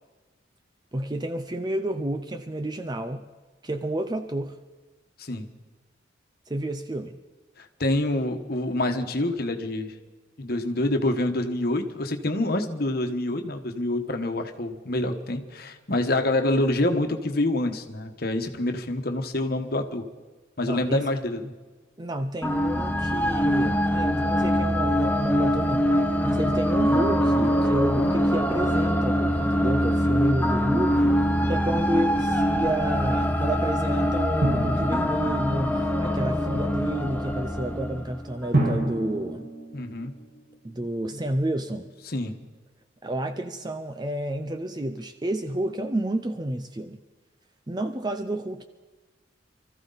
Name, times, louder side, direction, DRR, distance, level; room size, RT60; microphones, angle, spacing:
voice 1, 0.9-3.2 3.6-4.6 6.5-7.2 20.6-21.1 22.0-31.2 31.5-39.5 40.6-41.9 43.0-47.0 47.7-48.6, right 1 dB, 20° right, 7 dB, 0.5 m, -30 dB
voice 2, 7.6-9.9 10.4-20.0 20.6-21.5 39.7-40.1 42.1-42.4, left 1 dB, 50° left, 6 dB, 1.3 m, -26 dB
sound 1, 22.4-38.6, equal, 10° left, 0.9 m, -24 dB
Drum, 34.4-35.9 38.5-40.7, right 1 dB, 60° right, 3.9 m, -28 dB
24.5 x 14.0 x 4.0 m, 1.3 s
head